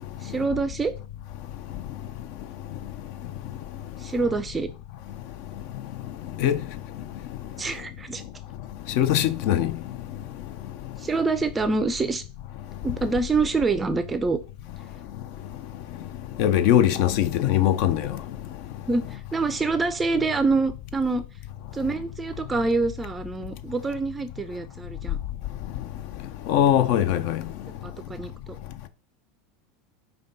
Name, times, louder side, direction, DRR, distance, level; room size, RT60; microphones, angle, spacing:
voice 1, 0.2-0.9 4.0-4.7 7.6-8.2 11.0-12.2 12.8-14.4 18.9-21.2 21.7-25.2 27.8-28.6, right 3 dB, 20° right, 0.4 m, -26 dB
voice 2, 9.0-9.7 16.4-18.0 26.5-27.4, left 11 dB, 60° left, 0.5 m, -20 dB
5.0 x 2.3 x 3.9 m
hypercardioid pair, 95°, 0 cm